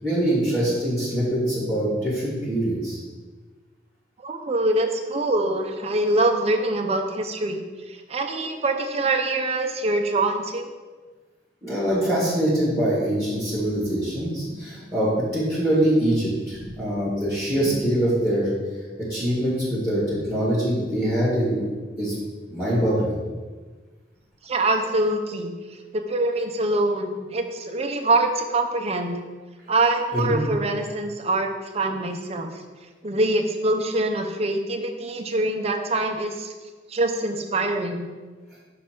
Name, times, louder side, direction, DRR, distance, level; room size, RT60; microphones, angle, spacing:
voice 1, 0.0-3.0 11.6-18.5 19.0-21.7 22.0-22.1 22.5-23.1 30.1-30.4, right 1 dB, 15° left, -7 dB, 2.0 m, -23 dB
voice 2, 4.2-7.6 7.9-10.7 24.4-25.5 25.9-29.2 29.7-32.6 33.0-36.5 36.9-38.1, right 2 dB, 35° right, 4 dB, 0.6 m, -24 dB
5.4 x 3.9 x 5.9 m, 1.4 s
head